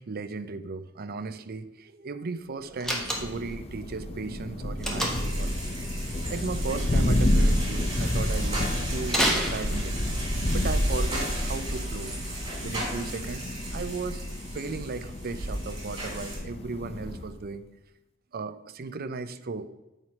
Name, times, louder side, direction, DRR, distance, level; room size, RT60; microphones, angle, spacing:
voice 1, 0.0-5.7 6.3-9.9 10.5-12.1 12.6-14.2 14.5-17.6 18.3-19.7, right 4 dB, 45° right, 11 dB, 0.5 m, -36 dB
Slam, 2.8-3.6 4.8-5.4 9.1-10.2, equal, ahead, 1.3 m, -28 dB
Thunder, 2.9-17.5, left 1 dB, 30° left, 0.6 m, -30 dB
sound 1, 4.8-16.4, right 1 dB, 20° right, 3.0 m, -33 dB
9.4 x 4.5 x 5.8 m, 1.0 s
head